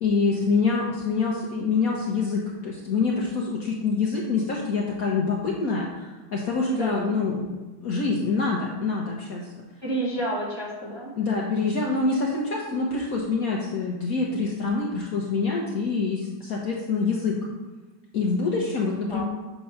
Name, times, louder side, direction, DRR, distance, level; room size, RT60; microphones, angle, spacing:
voice 1, 0.0-7.5 7.8-9.5 11.1-17.5 18.1-19.2, left 4 dB, 60° left, -2 dB, 1.0 m, -26 dB
voice 2, 6.7-7.1 9.8-11.2 19.1-19.2, right 1 dB, 20° right, -6 dB, 0.8 m, -29 dB
7.5 x 3.0 x 5.6 m, 1.2 s
omnidirectional pair, 2.2 m